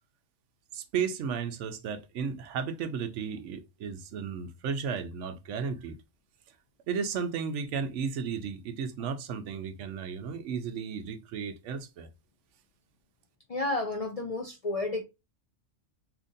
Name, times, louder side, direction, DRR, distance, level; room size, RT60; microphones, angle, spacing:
voice 1, 0.7-6.0 6.9-12.1, right 6 dB, 85° right, 0.9 m, -34 dB
voice 2, 13.5-15.0, left 2 dB, 55° left, 0.4 m, -31 dB
2.8 x 2.6 x 3.7 m
omnidirectional pair, 1.2 m